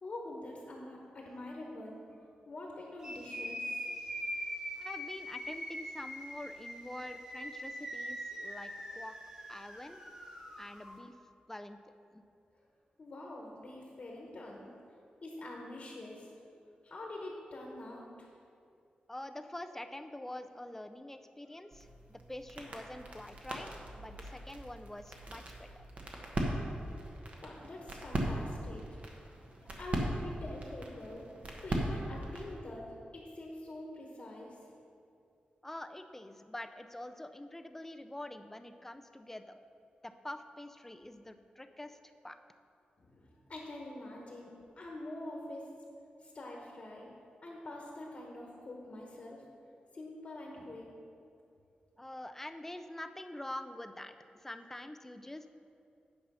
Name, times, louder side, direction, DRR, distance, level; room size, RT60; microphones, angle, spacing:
voice 1, 0.0-2.2 2.5-3.8 13.0-14.7 15.2-16.3 16.8-18.3 27.4-28.9 29.6-31.3 31.6-34.7 43.0-45.7 46.2-47.1 47.4-49.4 49.9-50.9, left 1 dB, 50° left, -1 dB, 1.2 m, -45 dB
sound 1, 3.0-10.9, equal, 25° right, 1.9 m, -42 dB
voice 2, 4.8-9.2 9.5-10.0 10.6-11.1 11.5-11.8 12.1-12.2 19.1-25.9 35.6-39.6 40.0-42.0 42.2-42.4 52.0-55.5, left 1 dB, 10° left, 8 dB, 0.4 m, -46 dB
sound 2, 21.7-32.6, right 1 dB, 50° right, 1.2 m, -39 dB
9.3 x 5.5 x 5.6 m, 2.6 s
wide cardioid pair, 105°, 3 cm